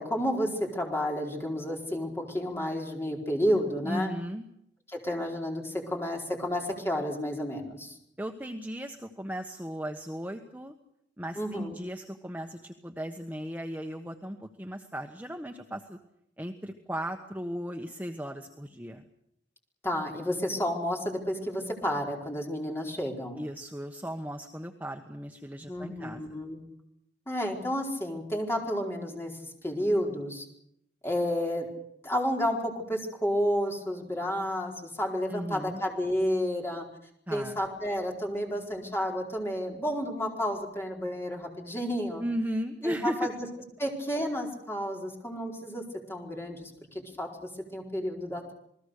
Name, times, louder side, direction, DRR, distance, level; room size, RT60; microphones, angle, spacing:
voice 1, 0.0-4.1 4.9-8.0 11.4-11.8 19.8-23.4 25.7-26.6 27.3-29.3 29.6-30.4 31.0-31.7 32.0-36.9 37.3-42.2 42.8-43.5 43.8-45.8 46.1-48.5, equal, 15° left, 0 dB, 4.5 m, -31 dB
voice 2, 3.8-4.4 8.2-10.7 11.2-16.0 16.4-19.0 23.4-26.4 35.3-35.8 37.3-37.6 42.2-43.2, equal, 10° right, 3 dB, 1.2 m, -36 dB
28.5 x 20.0 x 6.6 m, 0.76 s
head